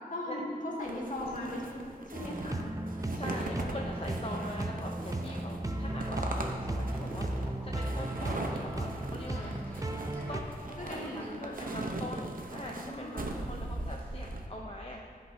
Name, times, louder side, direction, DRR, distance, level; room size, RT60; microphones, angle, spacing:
voice 1, 0.1-1.8 2.1-2.6 10.8-11.9 12.7-13.4, left 1 dB, 55° left, -4 dB, 1.9 m, -38 dB
sound 1, 0.8-14.5, right 2 dB, 65° right, 0.8 m, -40 dB
sound 2, 2.1-10.4, right 1 dB, 20° right, 0.5 m, -35 dB
voice 2, 3.1-9.8 10.3-15.0, left 1 dB, 40° left, 0 dB, 0.6 m, -43 dB
sound 3, 5.9-12.0, equal, 10° left, 1.6 m, -54 dB
14.0 x 5.3 x 2.7 m, 2.4 s
wide cardioid pair, 60°, 16 cm